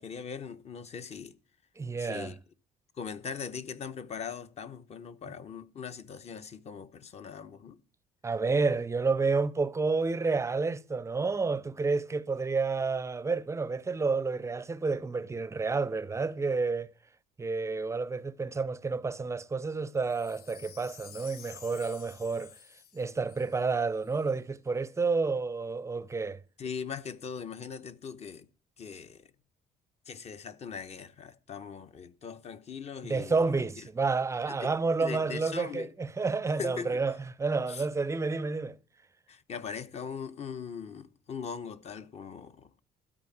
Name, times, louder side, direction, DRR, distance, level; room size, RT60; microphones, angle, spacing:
voice 1, 0.0-1.3 2.0-2.4 3.0-7.8 26.6-28.5 28.8-29.3 30.1-33.4 33.8-33.9 34.5-34.7 35.0-35.9 36.6-37.0 37.7-37.9 39.3-42.7, left 6 dB, 40° left, 0.9 m, -40 dB
voice 2, 1.8-2.3 8.2-16.9 17.4-22.5 22.9-26.4 33.0-38.8, right 4 dB, 15° right, 0.6 m, -30 dB
Wind chime, 19.9-24.3 24.9-25.0, left 9 dB, 70° left, 0.9 m, -52 dB
13.0 x 5.1 x 8.5 m
cardioid pair, 110°, 17 cm